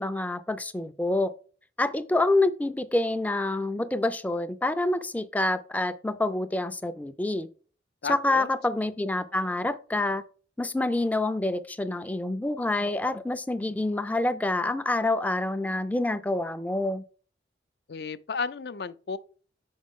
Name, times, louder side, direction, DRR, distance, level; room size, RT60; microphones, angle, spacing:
voice 1, 0.0-1.3 1.8-7.5 8.1-10.2 10.6-17.0, left 2 dB, 10° left, 0.4 m, -27 dB
voice 2, 8.0-8.5 17.9-19.2, left 5 dB, 65° left, 0.5 m, -33 dB
6.9 x 5.2 x 3.6 m
head